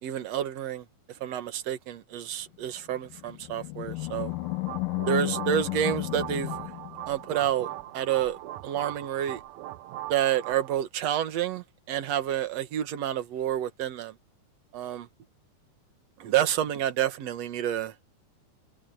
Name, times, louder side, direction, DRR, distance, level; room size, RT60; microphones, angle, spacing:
voice 1, 0.0-0.9 1.2-4.3 5.1-6.6 7.1-7.7 7.9-9.4 10.1-14.1 14.7-15.1 16.2-17.9, right 11 dB, 55° right, 2.1 m, -29 dB
Animal, 3.0-7.5, left 22 dB, 75° left, 2.4 m, -33 dB
sound 1, 4.3-10.8, right 15 dB, 80° right, 1.6 m, -40 dB
omnidirectional pair, 4.3 m